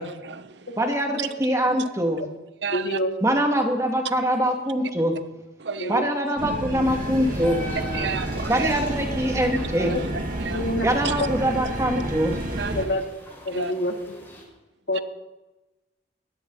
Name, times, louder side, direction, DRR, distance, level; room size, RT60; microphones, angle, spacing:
voice 1, 0.0-0.8 1.2-1.3 2.6-3.0 5.6-6.0 7.9-8.7 9.8-10.1 10.4-10.7 11.0-11.3 12.6-13.0 13.5-13.7 14.9-15.0, right 6 dB, 70° right, 12 dB, 0.8 m, -32 dB
voice 2, 0.8-2.2 3.2-5.1 5.9-7.6 8.5-9.9 10.8-12.4, equal, 15° right, 2 dB, 2.4 m, -23 dB
voice 3, 2.7-3.1 5.8-6.0 10.5-10.9 12.7-13.0 13.5-14.2 14.9-15.0, equal, 65° left, 4 dB, 2.1 m, -26 dB
sound 1, 6.4-12.8, right 1 dB, 50° right, 2.0 m, -30 dB
sound 2, 6.8-14.4, equal, 15° left, 5.0 m, -41 dB
21.5 x 16.5 x 4.1 m, 1.1 s
head